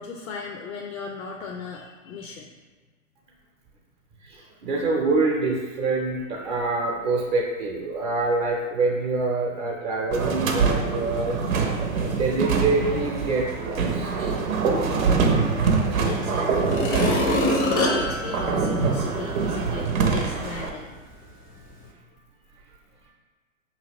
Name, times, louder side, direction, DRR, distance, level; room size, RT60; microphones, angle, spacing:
voice 1, 0.0-2.5 5.4-5.5 12.0-12.3 14.9-20.9, left 5 dB, 90° left, 1 dB, 0.5 m, -37 dB
voice 2, 4.2-11.4 12.0-14.4, right 3 dB, 35° right, -2 dB, 0.7 m, -26 dB
sound 1, 10.1-20.7, right 5 dB, 80° right, 0.7 m, -24 dB
sound 2, 15.9-16.0 16.6-19.4 19.9-20.0, left 1 dB, 20° left, 0.4 m, -26 dB
5.1 x 2.8 x 2.9 m, 1.3 s
hypercardioid pair, 115°, 41 cm